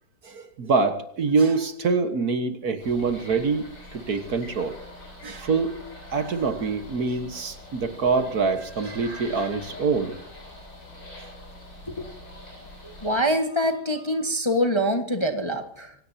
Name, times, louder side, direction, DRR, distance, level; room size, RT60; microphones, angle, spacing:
voice 1, 0.2-4.8 5.2-5.8 6.1-10.2, right 4 dB, 55° right, 8 dB, 1.8 m, -25 dB
sound 1, 2.8-13.2, left 1 dB, 90° left, 8.6 m, -44 dB
voice 2, 12.8-15.9, equal, 15° left, 5 dB, 1.4 m, -25 dB
26.0 x 17.0 x 2.8 m, 0.67 s
omnidirectional pair, 2.0 m